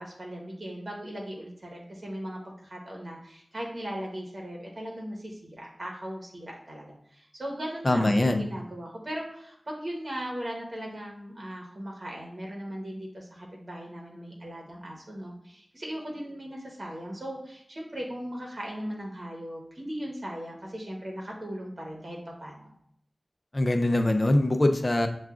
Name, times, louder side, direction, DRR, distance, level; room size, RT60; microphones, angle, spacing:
voice 1, 0.0-22.7, equal, 50° right, -1 dB, 1.0 m, -38 dB
voice 2, 7.8-8.4 23.5-25.1, left 1 dB, 35° left, 6 dB, 0.6 m, -23 dB
7.0 x 2.4 x 2.4 m, 0.71 s
wide cardioid pair, 55°, 0 cm